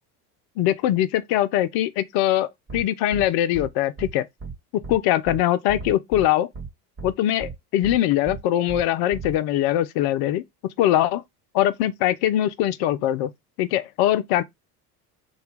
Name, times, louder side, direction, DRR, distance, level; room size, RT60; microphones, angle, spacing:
voice 1, 0.6-4.3 4.9-6.5 7.0-10.4 10.8-11.2 11.5-13.3 13.6-14.4, left 13 dB, 50° left, 0.5 m, -22 dB
sound 1, 2.7-2.8 3.1-3.2 3.5-3.7 4.0-4.1 4.4-4.5 4.8-5.0 5.3-5.4 5.7-6.2 6.5-6.7 7.0-7.1 7.4-7.5 7.8-8.0 8.3-8.4 8.7-8.8 9.1-9.3, right 5 dB, 25° right, 1.5 m, -35 dB
2.8 x 2.3 x 3.3 m
hypercardioid pair, 70°, 49 cm